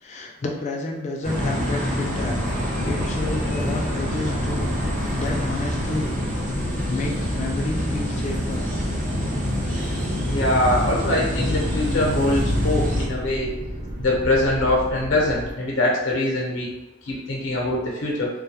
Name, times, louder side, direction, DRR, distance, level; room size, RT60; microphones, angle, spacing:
voice 1, 0.0-4.7 5.2-6.1 6.9-8.6, left 2 dB, 35° left, 1 dB, 0.3 m, -30 dB
sound 1, 1.2-13.0, equal, 40° right, 0.7 m, -26 dB
sound 2, 2.2-15.5, equal, 70° right, 1.0 m, -33 dB
voice 2, 10.3-13.5 14.0-16.7 17.0-18.3, left 1 dB, 85° left, -3 dB, 0.6 m, -23 dB
2.2 x 2.0 x 2.8 m, 0.96 s
head